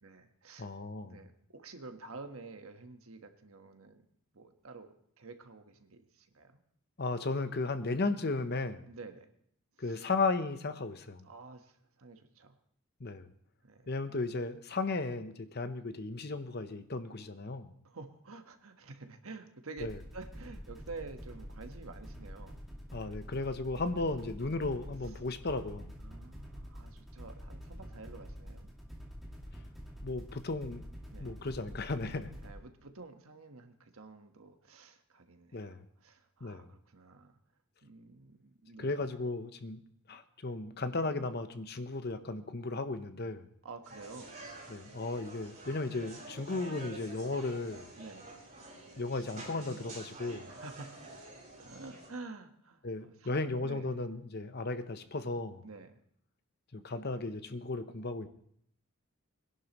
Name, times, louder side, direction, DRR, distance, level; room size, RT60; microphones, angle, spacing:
voice 1, 0.0-0.7 1.0-4.0 4.3-6.6 8.9-9.3 9.8-10.0 11.2-12.6 13.6-13.9 17.8-19.9 20.1-22.6 23.9-24.1 25.0-25.2 26.0-28.7 31.1-31.3 32.4-37.4 37.8-39.0 43.6-44.4 48.0-48.3 50.5-51.1 51.6-54.0 55.6-56.0, right 3 dB, 75° right, 6 dB, 1.3 m, -49 dB
voice 2, 0.6-1.2 7.0-8.8 9.8-11.2 13.0-13.3 13.9-17.7 19.8-19.9 22.9-25.9 30.0-30.8 31.2-32.3 35.5-35.8 36.4-36.7 38.8-39.8 40.1-43.4 44.7-47.9 49.0-50.5 52.8-55.6 56.7-58.3, left 3 dB, 45° left, 10 dB, 0.8 m, -35 dB
sound 1, 19.8-32.5, equal, ahead, 2.2 m, -47 dB
sound 2, 43.8-52.1, right 2 dB, 35° right, 6.1 m, -49 dB
21.5 x 11.0 x 3.0 m, 0.67 s
head